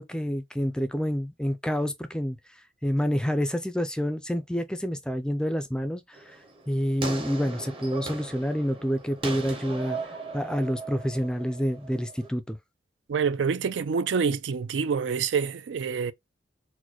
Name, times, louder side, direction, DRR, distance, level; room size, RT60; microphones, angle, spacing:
voice 1, 0.0-2.4 2.8-6.2 6.7-10.0 10.3-12.6, equal, 5° left, 0.3 m, -28 dB
sound 1, 6.1-12.3, right 3 dB, 30° right, 0.7 m, -38 dB
voice 2, 13.1-16.1, right 6 dB, 85° right, 0.4 m, -27 dB
4.1 x 2.2 x 2.9 m
head